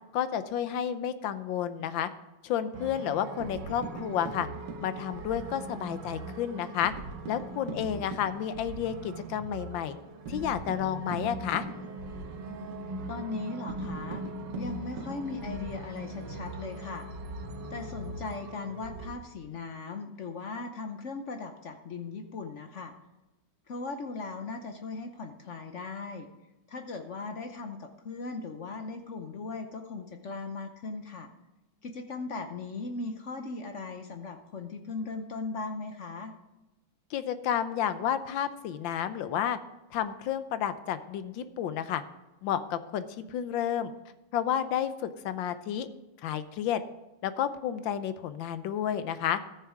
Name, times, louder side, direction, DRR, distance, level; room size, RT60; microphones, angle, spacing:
voice 1, 0.1-2.1 2.4-4.5 4.8-6.9 7.3-10.0 10.3-11.6 37.1-39.6 39.9-42.0 42.4-43.9 44.3-45.9 46.2-46.8 47.2-49.4, left 9 dB, 75° left, 12 dB, 1.5 m, -31 dB
sound 1, 2.7-19.1, right 2 dB, 65° right, 1.8 m, -40 dB
voice 2, 7.7-8.1 13.1-14.2 14.6-17.1 17.7-22.9 23.7-26.3 26.7-31.3 31.8-36.3, left 3 dB, 55° left, 6 dB, 0.8 m, -38 dB
14.0 x 6.8 x 4.9 m, 1.0 s
omnidirectional pair, 2.1 m